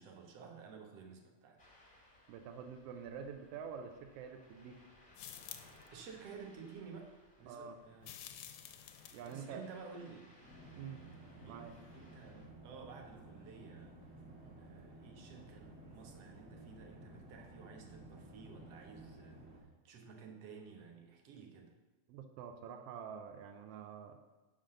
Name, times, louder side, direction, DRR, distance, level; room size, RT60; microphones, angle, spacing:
voice 1, 0.0-1.7 5.9-8.2 9.2-10.4 11.4-14.0 14.6-19.4 19.9-21.7, right 5 dB, 65° right, 3 dB, 1.8 m, -53 dB
Ocean, 1.6-12.5, left 1 dB, 30° left, 0.5 m, -64 dB
voice 2, 2.3-4.9 7.5-7.8 9.1-9.6 10.8-11.0 11.4-11.7 22.1-24.2, right 7 dB, 85° right, 5 dB, 1.4 m, -47 dB
sound 1, 5.1-5.9 8.0-9.4, left 10 dB, 75° left, 1.5 m, -50 dB
sound 2, 10.4-19.6, right 2 dB, 40° right, 0.9 m, -55 dB
5.7 x 5.0 x 6.4 m, 1.2 s
omnidirectional pair, 3.3 m